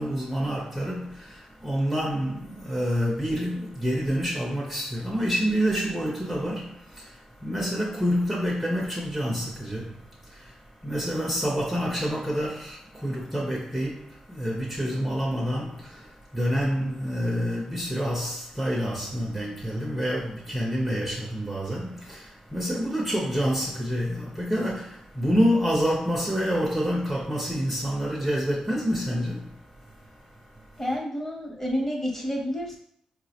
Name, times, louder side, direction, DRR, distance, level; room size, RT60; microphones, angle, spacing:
voice 1, 0.0-31.0, equal, 5° right, 0.6 m, -28 dB
voice 2, 30.8-32.8, equal, 15° left, 0.9 m, -29 dB
4.2 x 2.0 x 2.8 m
cardioid pair, 100°, 2 cm